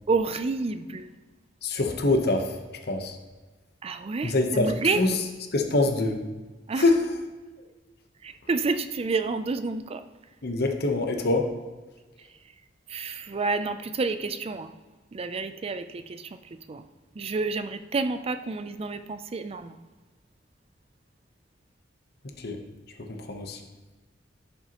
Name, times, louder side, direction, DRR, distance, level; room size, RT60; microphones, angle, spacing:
voice 1, 0.1-1.1 3.8-5.0 6.7-6.9 8.2-10.0 12.9-14.7 15.1-16.8 17.1-19.8, right 4 dB, 30° right, 10 dB, 0.4 m, -29 dB
voice 2, 1.6-2.5 2.9-3.2 4.2-4.7 5.0-5.2 5.5-6.2 6.8-7.0 10.4-11.5 22.4-22.6 23.1-23.6, left 2 dB, 60° left, 4 dB, 0.9 m, -24 dB
11.0 x 5.6 x 2.9 m, 1.3 s
head